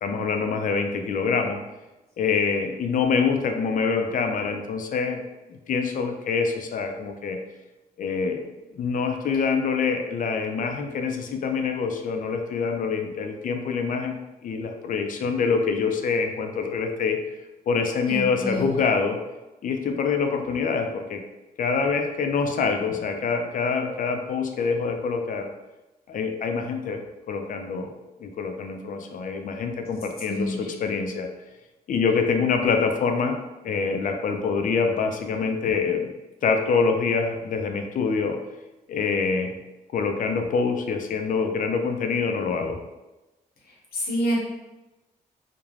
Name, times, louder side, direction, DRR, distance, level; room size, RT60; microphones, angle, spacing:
voice 1, 0.0-1.6 2.2-5.2 5.5-7.4 8.0-14.1 14.4-17.2 17.7-19.2 19.6-21.2 21.6-25.5 26.1-31.3 31.9-33.4 33.6-36.1 36.4-38.4 38.9-39.5 39.9-42.8, left 5 dB, 60° left, 5 dB, 0.4 m, -25 dB
voice 2, 18.1-18.7 30.3-30.6 43.9-44.4, equal, 80° left, -3 dB, 0.8 m, -26 dB
2.4 x 2.1 x 3.1 m, 1.0 s
cardioid pair, 60°, 16 cm